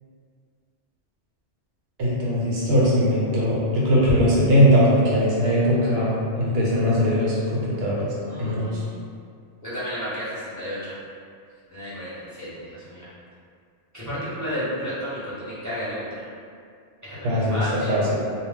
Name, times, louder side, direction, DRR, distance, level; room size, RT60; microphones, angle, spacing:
voice 1, 2.0-8.1 8.4-8.8 17.2-18.2, equal, 60° right, -6 dB, 0.9 m, -20 dB
voice 2, 8.2-9.0 9.6-10.9 11.7-13.1 13.9-16.3 17.0-17.9, equal, 15° right, -11 dB, 0.7 m, -32 dB
2.1 x 2.1 x 3.4 m, 2.2 s
omnidirectional pair, 1.2 m